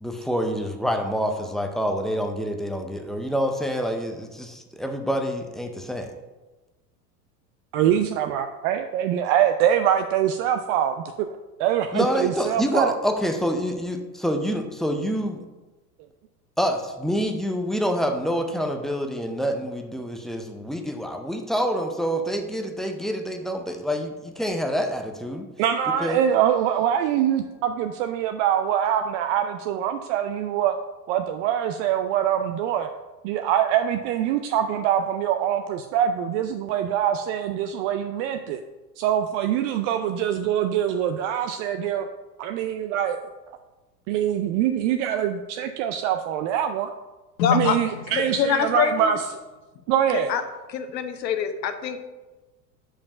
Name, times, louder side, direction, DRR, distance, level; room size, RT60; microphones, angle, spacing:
voice 1, 0.0-6.1 11.9-15.4 16.6-25.5 26.0-26.2, equal, ahead, 4 dB, 0.4 m, -27 dB
voice 2, 7.7-11.0 11.6-12.9 25.6-30.8 31.1-32.9 33.2-38.6 39.0-42.1 42.4-43.2 44.1-46.9 47.5-49.2 49.9-50.3, right 10 dB, 50° right, 7 dB, 0.5 m, -24 dB
voice 3, 47.4-49.1 50.3-50.4 50.7-52.0, left 7 dB, 80° left, 8 dB, 0.9 m, -24 dB
5.2 x 4.9 x 5.6 m, 1.1 s
hypercardioid pair, 90°, 50 cm